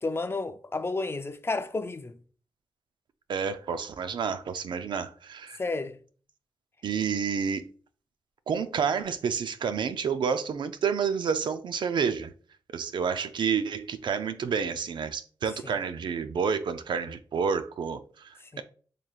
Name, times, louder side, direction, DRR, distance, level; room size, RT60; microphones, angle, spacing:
voice 1, 0.0-2.2 5.6-6.0 15.6-15.7 18.4-18.6, left 3 dB, 30° left, 0.4 m, -31 dB
voice 2, 3.3-5.6 6.8-7.6 8.5-12.3 12.7-18.6, right 6 dB, 75° right, 0.4 m, -29 dB
3.7 x 3.1 x 2.4 m
cardioid pair, 60°, 8 cm